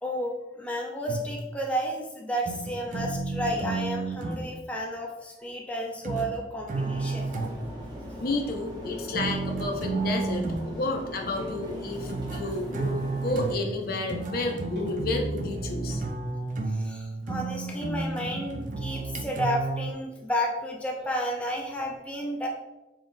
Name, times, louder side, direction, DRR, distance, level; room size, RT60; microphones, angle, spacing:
voice 1, 0.0-7.4 11.9-12.5 14.8-15.1 15.8-16.4 16.7-22.5, equal, 10° left, -2 dB, 0.5 m, -32 dB
sound 1, 1.1-1.5 2.4-4.5 6.0-7.8 9.1-10.8 12.1-19.9, right 3 dB, 45° right, 0.4 m, -32 dB
sound 2, 6.7-13.5, equal, 25° right, 0.9 m, -40 dB
voice 2, 8.2-16.0, left 2 dB, 55° left, 2 dB, 0.6 m, -31 dB
sound 3, 11.2-12.2 12.5-16.1, left 1 dB, 75° right, 1.3 m, -41 dB
4.0 x 3.6 x 2.6 m, 1.0 s
head